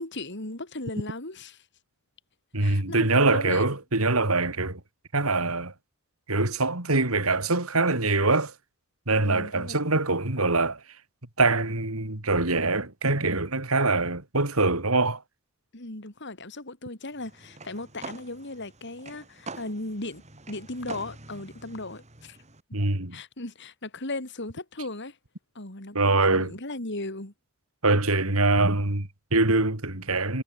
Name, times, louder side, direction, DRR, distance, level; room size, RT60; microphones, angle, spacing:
voice 1, 0.0-1.6 2.6-3.6 9.2-9.8 15.7-22.4 23.1-25.2 25.6-27.3, left 2 dB, 55° left, 3.7 m, -37 dB
voice 2, 2.5-4.8 5.1-5.7 6.3-8.5 9.1-11.0 11.4-15.2 22.7-23.2 25.9-26.6 27.8-30.4, right 3 dB, 75° right, 3.7 m, -24 dB
sound 1, 17.1-22.6, right 3 dB, 30° right, 4.6 m, -45 dB
head